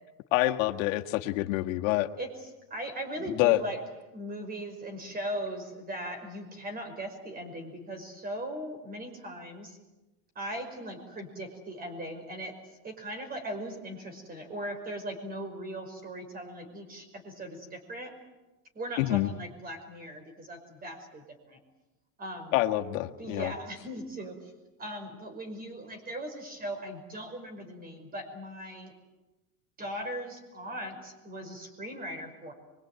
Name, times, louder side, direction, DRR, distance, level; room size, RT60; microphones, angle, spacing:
voice 1, 0.3-2.1 3.3-3.6 19.0-19.3 22.5-23.5, left 17 dB, 85° left, 4 dB, 1.6 m, -26 dB
voice 2, 2.7-3.8 4.1-9.8 10.4-12.5 12.8-18.1 18.7-21.6 22.2-22.6 23.2-24.5 24.8-28.9 29.8-32.5, right 1 dB, 25° right, 6 dB, 5.5 m, -39 dB
25.0 x 23.5 x 9.3 m, 1.1 s
cardioid pair, 150°, 39 cm